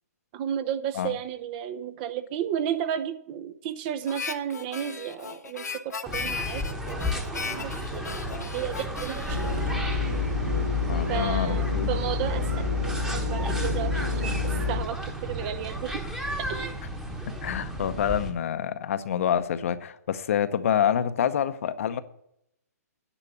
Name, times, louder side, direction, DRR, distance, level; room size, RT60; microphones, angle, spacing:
voice 1, 0.3-9.5 10.9-12.7 13.0-16.0 16.5-16.7, right 9 dB, 35° right, 11 dB, 0.7 m, -33 dB
Harmonica, 4.1-10.5, left 5 dB, 85° left, 0.9 m, -37 dB
sound 1, 6.1-18.3, equal, 5° right, 1.1 m, -33 dB
sound 2, 9.3-14.8, left 3 dB, 80° right, 3.8 m, -28 dB
voice 2, 10.9-11.9 17.4-22.0, left 9 dB, 55° left, 12 dB, 0.8 m, -27 dB
10.0 x 5.9 x 8.0 m, 0.75 s
hypercardioid pair, 135°, 9 cm